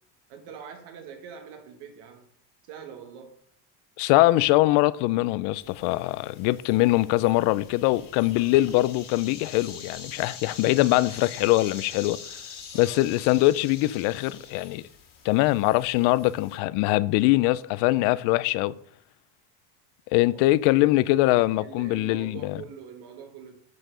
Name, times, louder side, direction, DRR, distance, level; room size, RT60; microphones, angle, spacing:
voice 1, 0.3-2.3 2.7-3.4 12.7-13.0 20.3-20.4 21.6-23.6, right 7 dB, 70° right, 1.3 m, -43 dB
voice 2, 4.0-12.2 12.7-14.8 15.2-18.7 20.1-22.6, left 18 dB, 75° left, 0.5 m, -22 dB
sound 1, 5.6-16.6, left 6 dB, 50° left, 2.4 m, -44 dB
8.3 x 4.7 x 4.9 m
cardioid pair, 140°, 40 cm